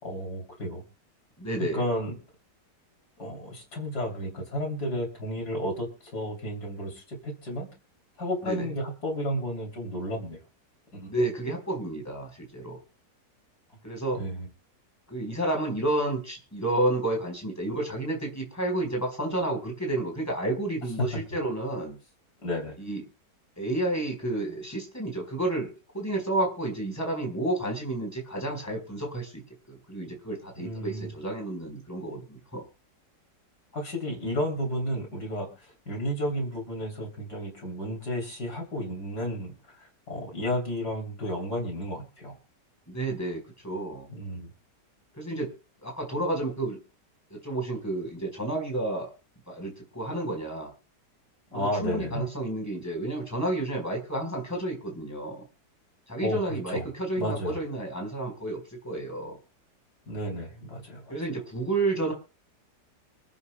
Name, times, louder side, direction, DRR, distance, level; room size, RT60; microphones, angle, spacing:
voice 1, 0.0-0.8 1.7-2.2 3.2-7.7 8.2-10.4 10.9-11.1 14.2-14.5 21.1-21.2 22.4-22.8 30.6-31.1 33.7-42.3 44.1-44.5 51.5-52.3 56.2-56.9 57.2-57.6 60.1-61.2, equal, 60° left, 0 dB, 3.7 m, -32 dB
voice 2, 1.4-1.8 8.4-8.7 11.1-12.8 13.8-14.2 15.1-22.0 22.8-23.0 23.6-29.4 29.7-32.6 42.9-44.1 45.1-45.5 45.8-46.8 47.3-49.1 49.5-50.7 51.5-55.4 56.1-59.4 61.1-62.1, right 2 dB, 10° left, 2 dB, 4.2 m, -31 dB
26.5 x 9.6 x 2.2 m, 0.33 s
omnidirectional pair, 1.9 m